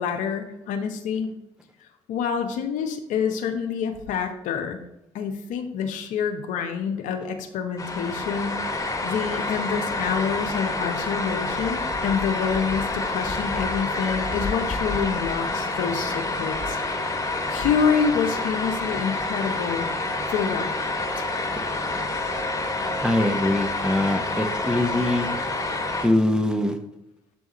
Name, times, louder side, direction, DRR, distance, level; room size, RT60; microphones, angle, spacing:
voice 1, 0.0-1.4 2.1-4.8 5.1-17.1 17.5-19.9 20.3-20.8 21.2-21.3, left 6 dB, 70° left, 5 dB, 0.7 m, -27 dB
sound 1, 7.8-26.1, left 2 dB, 25° left, 1.5 m, -28 dB
voice 2, 21.6-22.0 23.0-25.3 26.0-26.8, left 1 dB, 5° right, 6 dB, 0.9 m, -23 dB
7.6 x 3.6 x 4.1 m, 0.84 s
hypercardioid pair, 50°, 13 cm